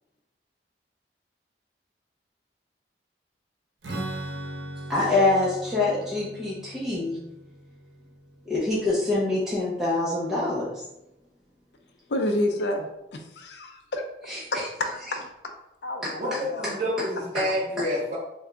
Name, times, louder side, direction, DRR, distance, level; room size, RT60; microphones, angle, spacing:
Strum, 3.8-9.5, right 1 dB, 85° right, 0.7 m, -39 dB
voice 1, 4.9-7.2 8.5-10.8 14.3-14.7 16.0-16.1, left 2 dB, ahead, -9 dB, 0.7 m, -25 dB
voice 2, 12.1-12.8 13.1-14.0 14.5-15.3 15.8-16.7, left 1 dB, 80° left, 4 dB, 0.5 m, -29 dB
voice 3, 16.2-18.2, equal, 40° right, -6 dB, 0.6 m, -28 dB
3.4 x 2.3 x 3.7 m, 0.88 s
head